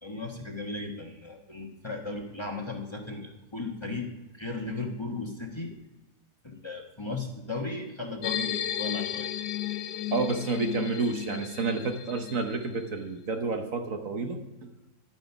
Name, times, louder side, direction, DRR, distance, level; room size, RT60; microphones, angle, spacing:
voice 1, 0.0-4.1 4.3-5.7 6.4-9.3, left 3 dB, 20° left, 1 dB, 1.2 m, -36 dB
sound 1, 8.2-12.9, left 11 dB, 90° left, 1.3 m, -34 dB
voice 2, 10.1-14.7, right 4 dB, 60° right, 5 dB, 1.4 m, -30 dB
11.5 x 9.1 x 5.9 m, 1.0 s
omnidirectional pair, 1.7 m